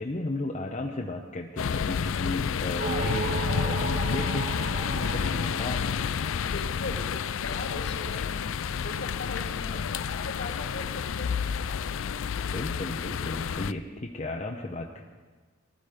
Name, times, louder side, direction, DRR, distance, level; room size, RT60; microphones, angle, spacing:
voice 1, 0.0-5.9 9.7-9.8 12.5-15.0, left 2 dB, 35° left, 0 dB, 0.9 m, -35 dB
sound 1, 1.6-13.7, left 6 dB, 75° left, 0.4 m, -30 dB
sound 2, 2.8-7.0, right 6 dB, 35° right, 0.6 m, -36 dB
voice 2, 6.4-8.5 8.8-10.8 11.2-11.8, left 2 dB, 60° left, 3 dB, 2.0 m, -40 dB
19.5 x 12.5 x 5.1 m, 1.4 s
head